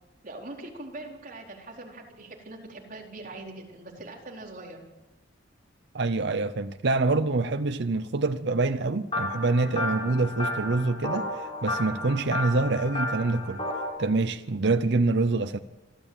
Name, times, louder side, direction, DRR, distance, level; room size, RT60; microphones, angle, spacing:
voice 1, 0.2-4.8, right 2 dB, 45° right, 4.3 m, -42 dB
voice 2, 5.9-13.6 14.0-15.6, right 3 dB, 60° right, 0.7 m, -26 dB
sound 1, 9.1-13.9, left 1 dB, 30° left, 4.1 m, -32 dB
26.5 x 12.5 x 8.9 m
head